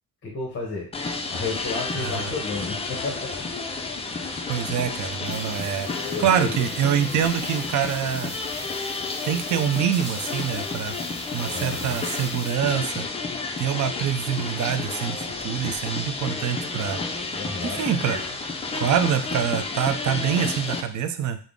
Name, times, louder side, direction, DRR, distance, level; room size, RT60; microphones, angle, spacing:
voice 1, 0.2-0.9 1.3-3.4 5.9-6.5 11.4-12.0 17.3-17.8, left 3 dB, 30° left, -1 dB, 0.8 m, -32 dB
sound 1, 0.9-20.8, left 3 dB, 15° left, 0.4 m, -31 dB
voice 2, 2.0-2.3 4.5-8.3 9.2-11.0 11.3-13.1 13.6-17.0 17.6-18.4 18.7-21.4, right 8 dB, 50° right, 9 dB, 0.5 m, -25 dB
sound 2, 5.2-12.8, equal, 10° right, 1.5 m, -42 dB
3.5 x 2.0 x 3.6 m, 0.42 s
cardioid pair, 100°, 37 cm